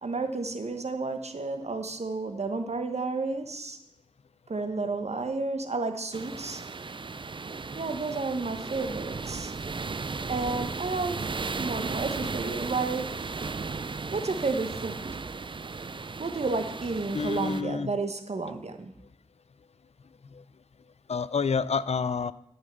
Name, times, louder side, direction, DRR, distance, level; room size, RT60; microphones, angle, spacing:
voice 1, 0.0-3.8 4.5-6.6 7.7-9.5 10.3-11.3 11.6-13.3 14.1-15.1 16.2-18.9, right 3 dB, 80° right, 7 dB, 1.1 m, -31 dB
sound 1, 6.1-17.6, right 4 dB, 50° right, 0.4 m, -35 dB
voice 2, 17.1-17.9 21.1-22.3, left 5 dB, 75° left, 17 dB, 0.4 m, -28 dB
12.0 x 5.5 x 7.7 m, 0.80 s
wide cardioid pair, 45°, 11 cm